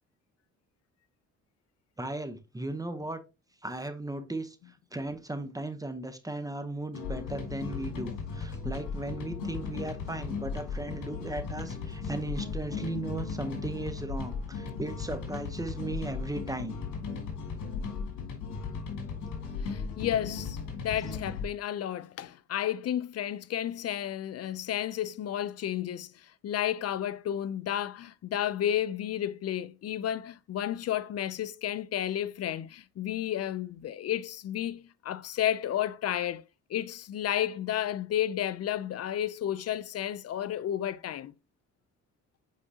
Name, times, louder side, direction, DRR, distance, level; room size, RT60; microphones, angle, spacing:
voice 1, 2.0-3.2 3.6-16.8, right 2 dB, 10° right, 0.9 m, -37 dB
sound 1, 6.9-21.5, left 5 dB, 90° left, 2.2 m, -36 dB
voice 2, 19.6-26.1 26.4-36.4 36.7-41.3, left 11 dB, 55° left, 0.6 m, -32 dB
7.4 x 4.8 x 2.8 m
cardioid pair, 90°, 30 cm